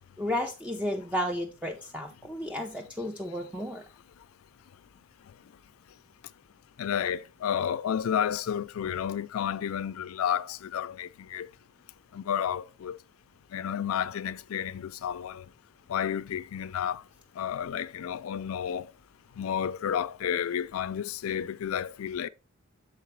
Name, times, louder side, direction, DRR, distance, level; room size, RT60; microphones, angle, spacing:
voice 1, 0.2-3.8, left 1 dB, 5° right, 0.4 m, -33 dB
voice 2, 6.8-11.5 12.1-13.0 13.5-15.5 15.9-17.0 17.4-18.9 19.4-22.3, left 8 dB, 85° left, 0.4 m, -31 dB
6.6 x 4.7 x 3.1 m
head